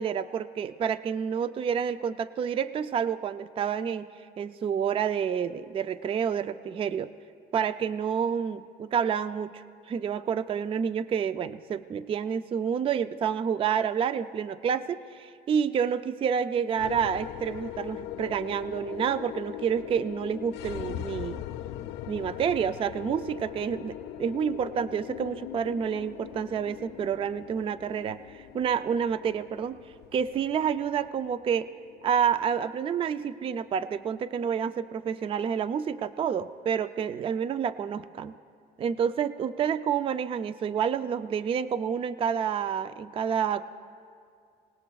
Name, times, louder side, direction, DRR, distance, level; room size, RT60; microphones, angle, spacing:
voice 1, 0.0-4.1 4.4-7.1 7.5-21.4 22.1-29.8 30.1-31.7 32.0-38.3 38.8-43.6, right 7 dB, 35° right, 13 dB, 0.3 m, -29 dB
sound 1, 16.8-35.2, left 13 dB, 90° left, 0.4 m, -41 dB
25.0 x 19.0 x 2.3 m, 2.3 s
cardioid pair, 110°, 17 cm